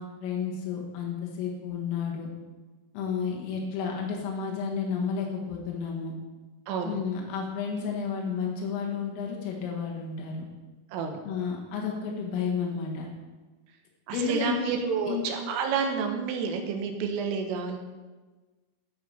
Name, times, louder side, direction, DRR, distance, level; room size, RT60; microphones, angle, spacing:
voice 1, 0.0-2.3 2.9-6.2 6.9-10.5 11.2-13.1 14.1-14.7 15.1-15.2, left 6 dB, 85° left, -1 dB, 4.0 m, -31 dB
voice 2, 6.7-7.0 10.9-11.2 14.1-17.8, right 5 dB, 85° right, 4 dB, 3.5 m, -29 dB
12.5 x 4.7 x 5.6 m, 1.3 s
omnidirectional pair, 5.9 m